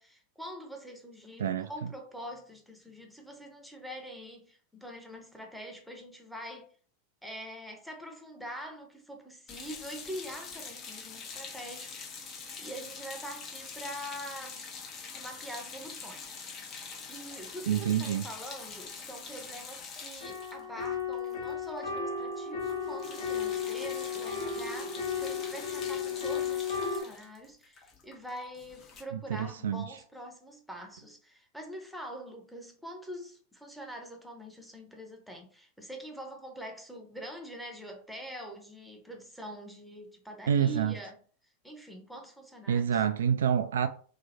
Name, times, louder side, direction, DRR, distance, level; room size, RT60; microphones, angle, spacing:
voice 1, 0.0-6.7 7.2-11.9 12.6-14.7 15.1-16.3 16.6-41.2 41.6-42.9, equal, ahead, 0.9 m, -44 dB
voice 2, 1.4-1.7 17.7-18.2 29.1-29.9 40.5-40.9 42.7-43.9, right 8 dB, 70° right, 0.3 m, -27 dB
sound 1, 9.5-21.9 22.1-22.3 22.6-29.0, left 5 dB, 30° left, 0.8 m, -45 dB
sound 2, 20.2-27.0, left 6 dB, 75° left, 1.2 m, -34 dB
2.9 x 2.3 x 4.2 m
figure-of-eight pair, 90°, 0 cm